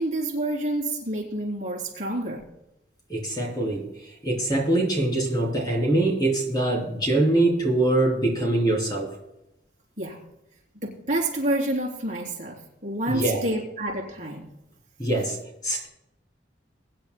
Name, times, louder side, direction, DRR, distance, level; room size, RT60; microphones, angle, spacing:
voice 1, 0.0-2.4 10.0-10.2 10.8-14.5, right 1 dB, 40° right, -2 dB, 3.3 m, -28 dB
voice 2, 3.1-9.2 13.1-13.4 15.0-15.9, right 2 dB, 20° left, -1 dB, 3.3 m, -24 dB
23.0 x 10.0 x 2.2 m, 0.86 s
head